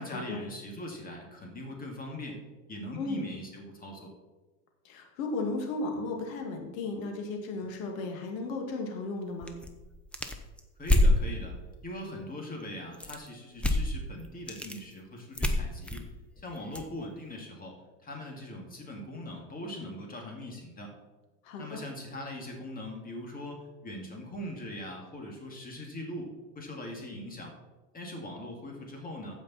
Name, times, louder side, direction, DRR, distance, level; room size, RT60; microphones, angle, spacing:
voice 1, 0.0-2.4 2.7-4.1 10.8-11.6 11.8-16.1 16.4-17.8 18.0-20.9 21.6-27.5 27.9-29.4, left 1 dB, 20° left, 1 dB, 2.3 m, -41 dB
voice 2, 4.8-9.5 21.4-21.8, left 3 dB, 85° left, 3 dB, 2.2 m, -35 dB
sound 1, 9.4-11.2 12.9-13.3 13.6-13.9 14.2-14.8 15.3-16.9, left 1 dB, 5° left, 0.6 m, -27 dB
15.0 x 5.3 x 4.2 m, 1.2 s
supercardioid pair, 135°, 39 cm